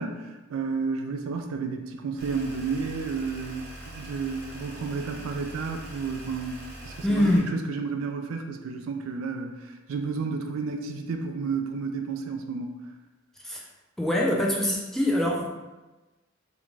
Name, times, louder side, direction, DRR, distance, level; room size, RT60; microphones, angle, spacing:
voice 1, 0.0-12.8, right 5 dB, 85° right, 4 dB, 0.3 m, -32 dB
sound 1, 2.2-7.4, equal, 55° right, 0.7 m, -43 dB
voice 2, 7.0-7.5 13.4-13.6 14.0-15.5, left 1 dB, ahead, -3 dB, 0.3 m, -24 dB
2.5 x 2.2 x 3.0 m, 1.1 s
head